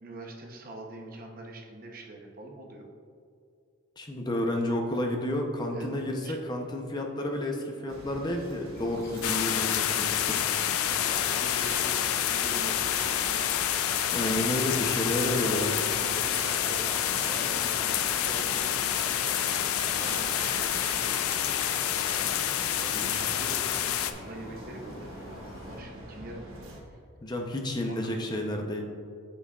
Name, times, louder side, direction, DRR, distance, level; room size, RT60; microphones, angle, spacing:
voice 1, 0.0-2.9 5.7-5.9 6.2-6.4 9.3-9.4 10.0-10.2 10.8-13.4 15.1-18.9 20.0-21.7 22.8-26.5 26.9-27.0 27.8-28.4, right 1 dB, 40° right, 1 dB, 0.8 m, -43 dB
voice 2, 4.0-10.4 13.9-15.7 22.9-23.1 27.2-28.8, left 1 dB, 20° left, 2 dB, 0.6 m, -31 dB
sound 1, 7.9-26.8, right 1 dB, 75° right, 1.2 m, -44 dB
sound 2, 8.7-25.8, left 1 dB, 45° left, 0.9 m, -47 dB
sound 3, 9.2-24.1, left 10 dB, 85° left, 0.4 m, -28 dB
8.0 x 6.1 x 2.4 m, 2.4 s
head